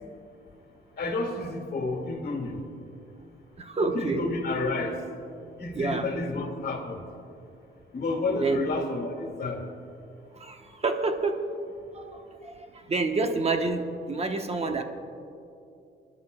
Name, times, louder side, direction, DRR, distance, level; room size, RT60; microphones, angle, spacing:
voice 1, 1.0-2.5 3.8-5.0 5.6-7.0 7.9-9.6, left 3 dB, 55° left, 2 dB, 2.1 m, -30 dB
voice 2, 3.6-4.3 5.7-6.1 8.4-8.7 10.4-11.5 11.9-14.8, right 3 dB, 30° right, 5 dB, 1.1 m, -28 dB
24.5 x 11.5 x 2.3 m, 2.6 s
cardioid pair, 90°, 20 cm